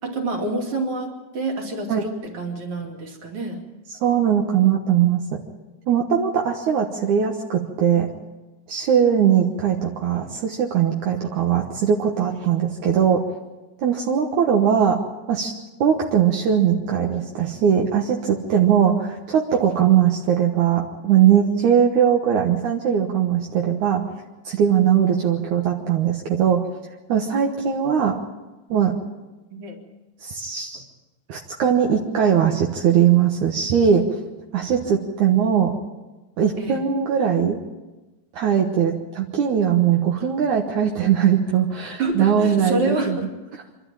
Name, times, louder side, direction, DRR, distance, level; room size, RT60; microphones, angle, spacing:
voice 1, 0.0-3.6 29.5-29.9 36.6-36.9 40.2-40.3 42.0-43.3, right 2 dB, 45° right, 2 dB, 3.2 m, -27 dB
voice 2, 4.0-5.2 5.9-8.1 8.7-13.2 13.8-15.0 15.3-15.5 15.8-24.0 24.5-26.6 27.1-28.2 28.7-28.9 30.2-30.8 31.3-34.0 34.5-35.7 36.4-37.6 38.3-43.2, right 8 dB, 70° right, 1 dB, 2.6 m, -20 dB
26.0 x 12.5 x 8.9 m, 1.1 s
omnidirectional pair, 3.7 m